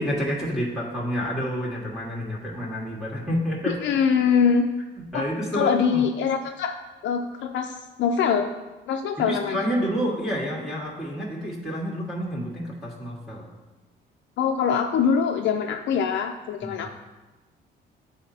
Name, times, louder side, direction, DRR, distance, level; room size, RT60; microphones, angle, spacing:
voice 1, 0.0-3.8 5.0-6.0 9.3-13.5 16.6-16.8, equal, ahead, -6 dB, 1.5 m, -29 dB
voice 2, 3.8-4.7 5.1-5.3 5.5-6.7 7.0-8.5 8.9-9.6 14.4-16.9, left 6 dB, 70° left, 4 dB, 0.4 m, -23 dB
8.9 x 4.1 x 2.7 m, 1.1 s
cardioid pair, 90°, 20 cm